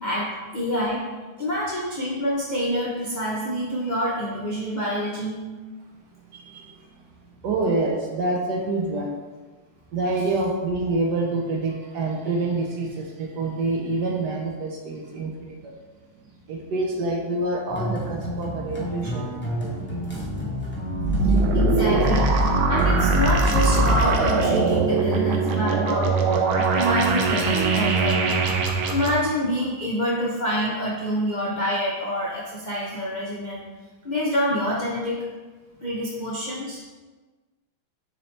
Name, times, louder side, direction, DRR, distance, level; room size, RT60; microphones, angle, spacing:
voice 1, 0.0-1.0 1.4-5.4 21.5-22.3 22.7-26.1 26.5-28.5 28.9-33.7 34.0-35.2 35.8-36.8, equal, 65° left, -6 dB, 0.4 m, -26 dB
voice 2, 6.3-6.7 7.4-9.1 9.9-15.7 16.5-20.0, right 2 dB, 65° right, 0 dB, 1.1 m, -27 dB
Double bass Jazz loop, 17.7-24.9, equal, 10° left, 0.6 m, -30 dB
sound 1, 20.9-29.1, right 3 dB, 80° right, 1.5 m, -21 dB
7.0 x 4.1 x 3.3 m, 1.3 s
omnidirectional pair, 2.3 m